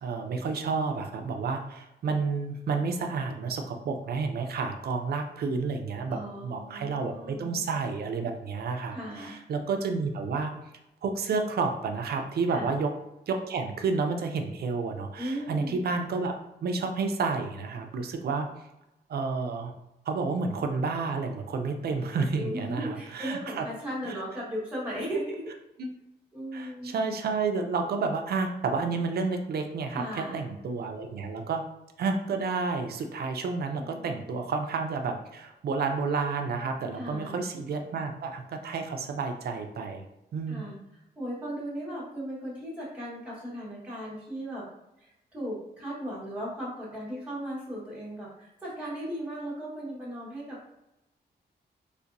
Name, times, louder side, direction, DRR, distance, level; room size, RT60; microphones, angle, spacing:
voice 1, 0.0-10.5 11.0-12.9 13.3-16.3 16.6-18.5 19.1-19.7 20.1-23.7 24.0-24.2 25.8-25.9 26.5-31.7 32.0-40.0 40.3-40.7, right 4 dB, 65° right, 5 dB, 0.5 m, -30 dB
voice 2, 6.1-7.6 8.9-9.4 12.5-12.7 15.2-15.8 22.3-25.5 26.3-26.9 29.9-30.5 33.7-34.2 36.9-37.5 40.5-40.8 41.2-44.6 45.0-50.7, equal, 5° right, -8 dB, 1.3 m, -37 dB
4.2 x 2.6 x 2.5 m, 0.90 s
wide cardioid pair, 170°, 17 cm